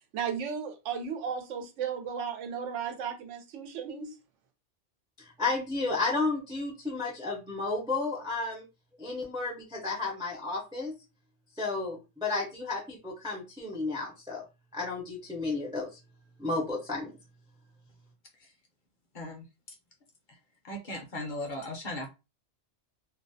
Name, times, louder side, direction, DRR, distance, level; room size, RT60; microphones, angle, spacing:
voice 1, 0.1-4.1, right 7 dB, 90° right, 6 dB, 0.9 m, -35 dB
voice 2, 5.2-8.6 9.0-10.9 11.6-14.4 14.7-15.9 16.4-17.2, left 3 dB, 5° right, -2 dB, 0.4 m, -32 dB
voice 3, 20.6-22.1, left 1 dB, 55° left, 2 dB, 0.6 m, -37 dB
2.4 x 2.1 x 2.6 m, 0.27 s
omnidirectional pair, 1.2 m